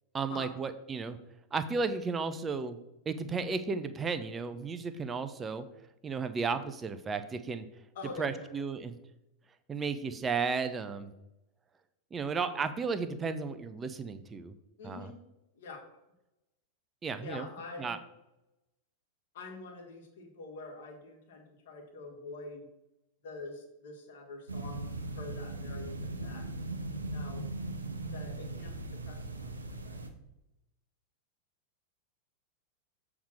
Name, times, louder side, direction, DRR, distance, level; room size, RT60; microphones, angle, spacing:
voice 1, 0.1-1.2 1.5-2.8 3.1-5.7 6.0-7.7 8.2-9.0 9.7-11.1 12.1-14.5 14.8-15.1 17.0-17.5 17.8-18.0, right 5 dB, 20° right, 10 dB, 0.7 m, -34 dB
voice 2, 8.0-8.5 14.8-15.2 15.6-15.8 17.2-18.0 19.3-22.7 23.2-26.5 27.0-27.5 28.1-30.0, left 3 dB, 55° left, 2 dB, 1.8 m, -46 dB
sound 1, 24.5-30.1, right 2 dB, 80° right, 0.8 m, -39 dB
7.2 x 3.6 x 6.3 m, 0.92 s
figure-of-eight pair, 90°, 0 cm